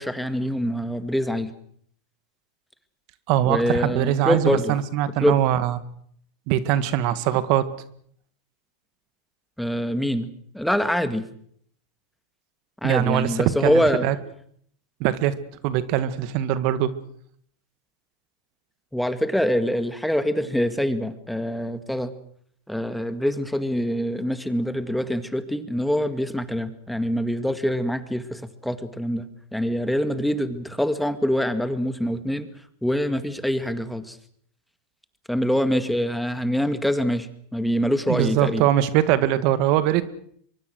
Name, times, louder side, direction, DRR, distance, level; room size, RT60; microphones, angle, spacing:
voice 1, 0.0-1.5 3.4-4.8 5.2-5.4 9.6-10.3 10.5-11.2 12.8-14.1 18.9-22.1 22.7-32.5 32.8-34.2 35.3-38.6, equal, ahead, 10 dB, 2.0 m, -25 dB
voice 2, 3.3-5.8 6.5-7.7 12.8-14.2 15.0-15.3 15.6-16.9 38.1-40.0, right 12 dB, 55° right, 13 dB, 1.8 m, -22 dB
24.5 x 23.0 x 6.5 m, 0.64 s
hypercardioid pair, 110°, 0 cm